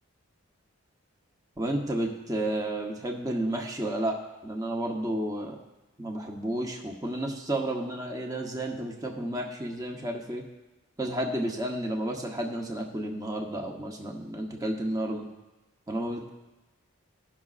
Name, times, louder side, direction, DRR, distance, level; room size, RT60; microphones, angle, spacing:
voice 1, 1.6-5.6 6.0-10.4 11.0-15.3 15.9-16.3, right 1 dB, 15° right, 1 dB, 0.8 m, -31 dB
17.5 x 6.0 x 2.4 m, 1.1 s
head